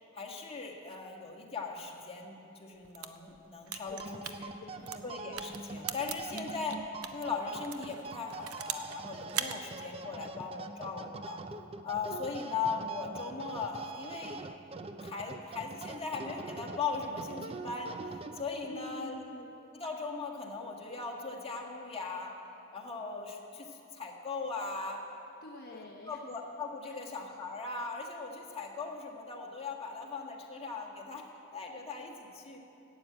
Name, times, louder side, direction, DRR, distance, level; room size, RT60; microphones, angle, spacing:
voice 1, 0.1-4.5 5.0-6.8 7.1-11.4 11.8-14.7 15.0-19.2 19.7-22.3 22.7-25.0 25.7-31.2 31.5-32.6, left 4 dB, 30° left, -1 dB, 1.6 m, -39 dB
sound 1, 2.7-7.2 7.6-9.0 9.3-9.6, right 9 dB, 85° right, 0.7 m, -39 dB
sound 2, 3.8-18.7, right 3 dB, 25° right, 0.5 m, -44 dB
voice 2, 3.9-5.2 18.7-19.5 25.4-26.2 26.8-27.0, left 1 dB, 50° left, -1 dB, 0.8 m, -47 dB
12.5 x 8.9 x 8.5 m, 2.9 s
head